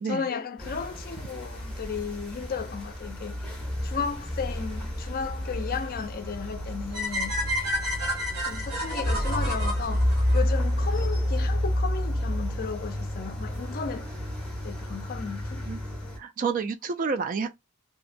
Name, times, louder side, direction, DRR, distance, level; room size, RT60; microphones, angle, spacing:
voice 1, 0.0-3.4 3.8-7.4 8.4-10.1 10.3-14.1 14.6-15.6, left 5 dB, 40° left, 0.4 m, -34 dB
sound 1, 0.6-16.2, left 1 dB, 5° left, 0.7 m, -30 dB
sound 2, 6.9-11.1, equal, 80° right, 1.3 m, -31 dB
voice 2, 16.2-17.6, right 5 dB, 40° right, 0.3 m, -29 dB
2.7 x 2.2 x 2.5 m
head